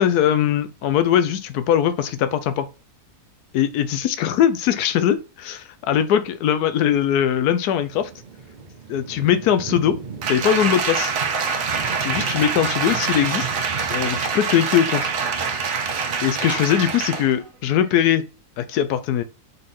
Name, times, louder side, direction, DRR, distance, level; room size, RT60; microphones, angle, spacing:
voice 1, 0.0-2.7 3.5-8.1 8.9-10.0 10.3-11.1 12.0-13.5 13.9-15.1 16.2-18.2 18.6-19.2, left 9 dB, 85° left, 1.1 m, -21 dB
sound 1, 7.8-17.2, right 5 dB, 45° right, 0.6 m, -37 dB
Applause, 10.2-17.4 17.8-17.9, right 5 dB, 60° right, 1.3 m, -25 dB
5.4 x 4.2 x 4.2 m
omnidirectional pair, 1.6 m